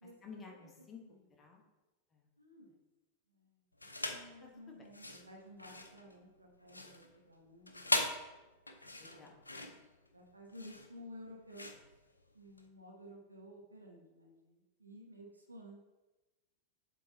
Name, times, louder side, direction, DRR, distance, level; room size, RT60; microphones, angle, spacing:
voice 1, 0.2-1.7 2.1-2.3 4.7-4.9 9.0-9.5, left 5 dB, 20° left, 0 dB, 1.4 m, -53 dB
voice 2, 2.4-2.8 3.3-8.1 9.1-9.3 10.1-11.7 12.3-15.8, equal, 85° right, -1 dB, 1.3 m, -54 dB
sound 1, 3.8-4.3 4.8-12.7, left 2 dB, 80° left, 0.6 m, -40 dB
7.5 x 3.8 x 4.0 m, 1.1 s
figure-of-eight pair, 90°, 0 cm